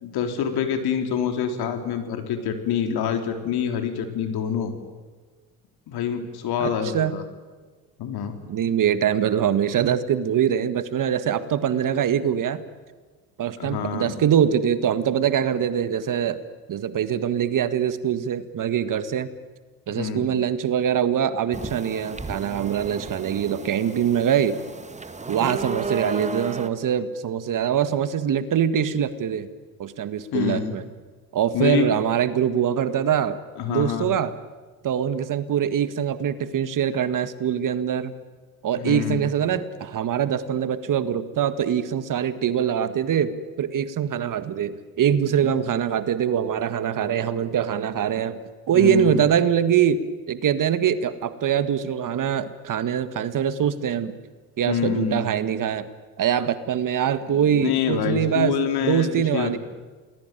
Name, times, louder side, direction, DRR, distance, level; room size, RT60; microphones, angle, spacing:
voice 1, 0.0-4.7 5.9-7.2 8.0-8.3 13.6-14.2 19.9-20.3 30.3-30.7 31.5-31.9 33.6-34.1 38.7-39.3 45.4-45.5 48.7-49.3 54.6-55.3 57.3-59.6, left 8 dB, 60° left, 6 dB, 3.9 m, -26 dB
voice 2, 6.6-7.1 8.5-12.6 13.4-16.4 16.7-19.3 19.9-24.6 25.3-29.5 29.8-30.8 31.3-33.4 33.7-34.3 34.8-38.1 38.6-48.4 48.7-50.0 50.3-54.1 54.6-55.9 56.2-58.5 58.8-59.6, right 9 dB, 45° right, 12 dB, 1.8 m, -23 dB
sound 1, 21.5-26.7, right 4 dB, 15° right, 1.9 m, -33 dB
28.5 x 20.0 x 9.3 m, 1.3 s
hypercardioid pair, 70°, 42 cm